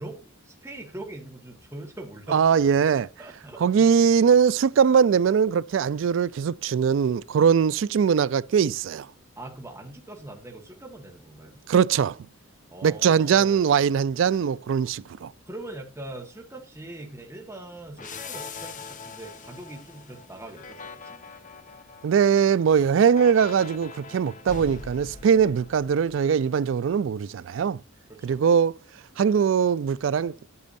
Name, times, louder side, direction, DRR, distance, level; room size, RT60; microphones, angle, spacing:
voice 1, 0.0-4.0 9.4-11.6 12.7-13.8 15.4-21.2 28.1-28.4, right 2 dB, 15° right, 1.4 m, -42 dB
voice 2, 2.3-3.1 3.6-9.1 11.7-12.2 12.8-15.3 22.0-27.8 28.2-28.7 29.2-30.3, right 7 dB, 65° right, 0.3 m, -21 dB
sound 1, 18.0-26.4, left 4 dB, 40° left, 1.0 m, -42 dB
10.0 x 8.5 x 2.6 m
head